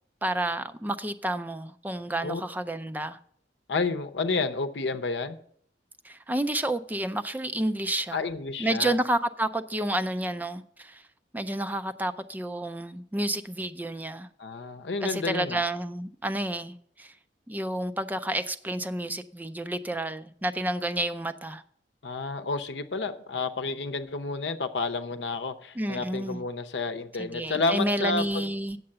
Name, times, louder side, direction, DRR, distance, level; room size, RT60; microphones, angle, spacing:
voice 1, 0.2-3.2 6.0-8.2 8.6-11.0 11.3-14.3 15.0-17.2 17.5-21.6 25.8-26.4 27.2-28.8, right 1 dB, 10° right, 0.4 m, -30 dB
voice 2, 3.7-5.4 8.1-9.0 14.4-15.6 22.0-28.4, left 3 dB, 75° left, 0.7 m, -30 dB
8.7 x 6.7 x 6.6 m
head